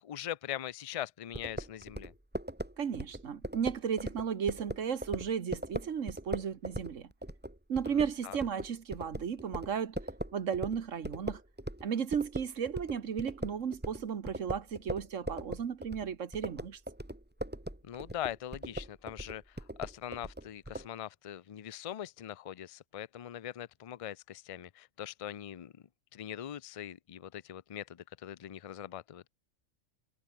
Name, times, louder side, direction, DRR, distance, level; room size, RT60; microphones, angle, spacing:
voice 1, 0.0-2.1 7.9-8.0 8.2-8.4 17.9-25.7 26.1-29.3, left 11 dB, 60° left, 0.3 m, -42 dB
sound 1, 1.3-11.9 12.1-20.9, right 1 dB, 5° right, 2.0 m, -40 dB
voice 2, 2.8-7.1 7.7-10.0 10.3-11.4 11.8-16.8, right 7 dB, 70° right, 1.6 m, -34 dB
omnidirectional pair, 1.4 m